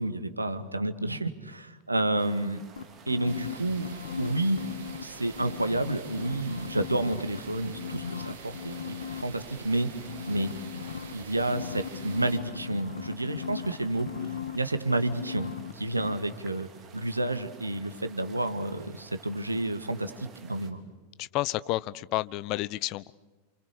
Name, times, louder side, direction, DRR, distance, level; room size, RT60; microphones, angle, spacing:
voice 1, 0.0-2.6 3.1-3.9 4.2-4.6 5.0-9.9 10.3-10.5 11.1-14.1 14.5-20.8, right 2 dB, 85° right, 9 dB, 1.8 m, -30 dB
sound 1, 2.2-20.7, right 5 dB, 25° right, 3.5 m, -53 dB
sound 2, 2.8-5.0 5.3-7.4 7.7-9.2 10.1-15.7 16.0-16.1, left 8 dB, 65° left, 1.0 m, -38 dB
sound 3, 3.2-12.4, right 5 dB, 55° right, 4.2 m, -46 dB
voice 2, 21.2-23.1, left 17 dB, 40° left, 18 dB, 0.8 m, -30 dB
28.5 x 28.5 x 6.8 m, 1.2 s
figure-of-eight pair, 90°, 0 cm